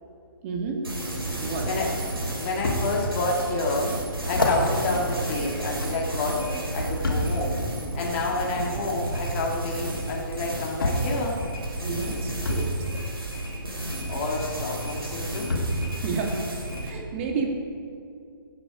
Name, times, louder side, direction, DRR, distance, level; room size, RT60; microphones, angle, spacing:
voice 1, 0.4-0.8 1.4-1.7 11.8-12.7 16.0-16.4 16.8-17.5, right 5 dB, 35° right, 1 dB, 2.1 m, -30 dB
sound 1, 0.8-16.9, right 1 dB, 85° right, 3.6 m, -32 dB
voice 2, 2.3-3.9 4.3-6.4 6.7-7.6 7.9-11.4 14.1-15.5, left 2 dB, 35° left, -2 dB, 1.9 m, -29 dB
sound 2, 2.6-2.8 3.4-3.5 4.2-6.1 7.0-7.4 8.6-8.7 10.0-10.1 10.8-11.1 12.4-12.7 14.3-14.4 15.5-15.8 16.6-16.7, left 2 dB, 70° left, 2.9 m, -28 dB
17.0 x 9.0 x 5.0 m, 2.5 s
figure-of-eight pair, 135°, 12 cm